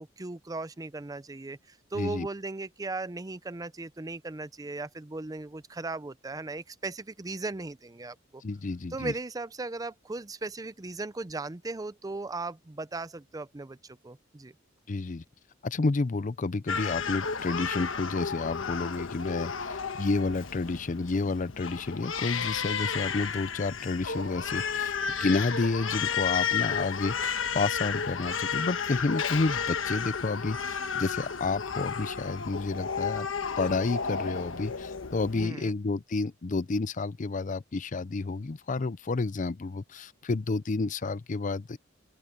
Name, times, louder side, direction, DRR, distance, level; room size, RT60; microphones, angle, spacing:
voice 1, 0.0-8.4 8.9-14.6 35.4-35.7, right 3 dB, 20° right, 0.5 m, -37 dB
voice 2, 2.0-2.3 8.4-9.1 14.9-15.2 15.6-33.3 33.6-41.8, left 3 dB, 40° left, 0.5 m, -30 dB
Crying sobbing, 16.7-35.5, left 6 dB, 80° left, 1.3 m, -32 dB
Telephone, 29.8-33.2, left 4 dB, 20° left, 4.3 m, -60 dB
open air
head